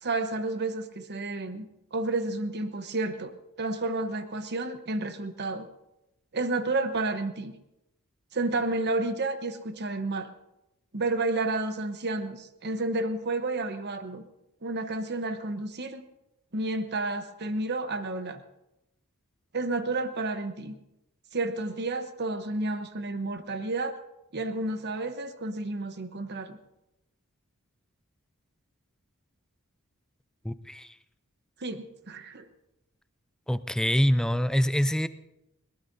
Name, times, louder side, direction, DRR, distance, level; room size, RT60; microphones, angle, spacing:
voice 1, 0.0-5.7 6.3-7.5 8.3-10.3 10.9-14.2 14.6-16.0 16.5-18.4 19.5-20.8 21.3-24.0 24.3-26.6 31.6-32.4, right 2 dB, 50° right, 9 dB, 1.0 m, -31 dB
voice 2, 30.4-30.9 33.5-35.1, equal, 5° left, 13 dB, 0.4 m, -25 dB
21.0 x 19.0 x 2.7 m, 0.90 s
head